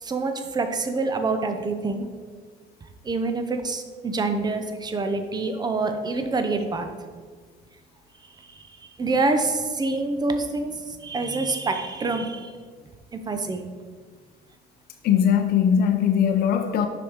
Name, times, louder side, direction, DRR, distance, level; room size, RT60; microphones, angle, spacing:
voice 1, 0.0-2.1 3.0-6.9 9.0-10.7 11.0-12.5 13.1-13.6, right 3 dB, 25° right, 7 dB, 0.7 m, -26 dB
voice 2, 15.0-16.9, left 8 dB, 65° left, 5 dB, 0.6 m, -20 dB
6.0 x 5.1 x 4.7 m, 1.6 s
cardioid pair, 110°, 17 cm